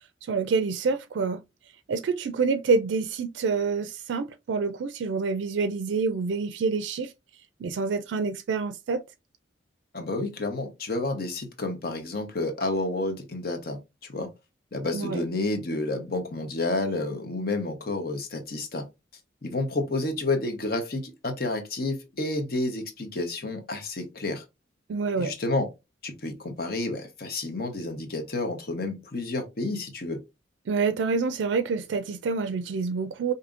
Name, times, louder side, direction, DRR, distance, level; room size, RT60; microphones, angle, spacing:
voice 1, 0.2-1.4 1.9-7.1 7.6-9.0 14.9-15.2 24.9-25.3 30.7-33.3, right 4 dB, 75° right, 0.3 m, -27 dB
voice 2, 9.9-14.3 14.7-18.9 19.4-24.4 25.2-25.7 26.0-30.2, left 2 dB, 55° left, 0.9 m, -30 dB
5.0 x 2.7 x 2.4 m
head